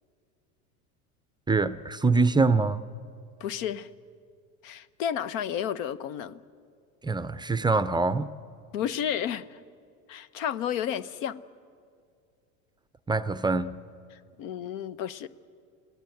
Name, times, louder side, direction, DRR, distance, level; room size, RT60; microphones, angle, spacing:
voice 1, 1.5-2.8 7.0-8.3 13.1-13.8, right 3 dB, 10° right, 14 dB, 0.5 m, -24 dB
voice 2, 3.4-3.9 4.6-6.4 8.7-9.6 10.1-11.4 14.4-15.3, left 9 dB, 70° left, 15 dB, 1.0 m, -31 dB
28.0 x 18.0 x 7.9 m, 2.3 s
supercardioid pair, 110°, 41 cm